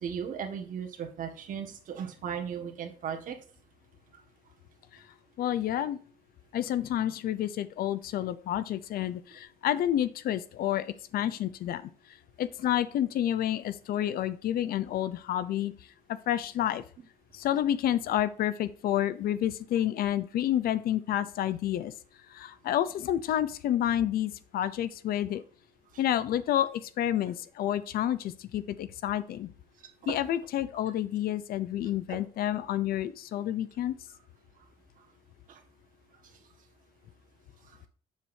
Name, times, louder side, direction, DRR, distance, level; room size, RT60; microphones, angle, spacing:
voice 1, 0.0-3.4 30.0-30.2 32.1-32.2 34.6-34.7 35.0-35.1 35.5-35.6 36.2-36.4 37.6-37.9, right 7 dB, 55° right, 3 dB, 1.7 m, -37 dB
voice 2, 5.4-6.0 6.5-11.9 12.4-15.7 16.3-16.8 17.3-21.9 22.3-25.4 26.0-29.5 30.1-33.9, left 11 dB, 70° left, 15 dB, 0.6 m, -29 dB
8.1 x 7.2 x 2.7 m, 0.42 s
cardioid pair, 150°, 16 cm